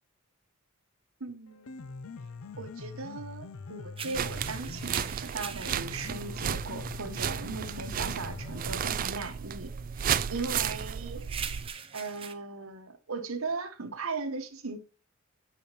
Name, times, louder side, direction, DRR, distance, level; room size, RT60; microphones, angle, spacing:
voice 1, 1.2-1.9 2.6-9.7 10.3-11.2 11.9-14.8, right 4 dB, 90° right, 1.3 m, -38 dB
Piano, 1.5-9.5, left 4 dB, 85° left, 0.5 m, -44 dB
sound 1, 4.0-12.3, right 7 dB, 25° right, 0.7 m, -45 dB
sound 2, 4.1-11.7, right 8 dB, 40° right, 0.4 m, -33 dB
9.3 x 5.1 x 3.1 m
head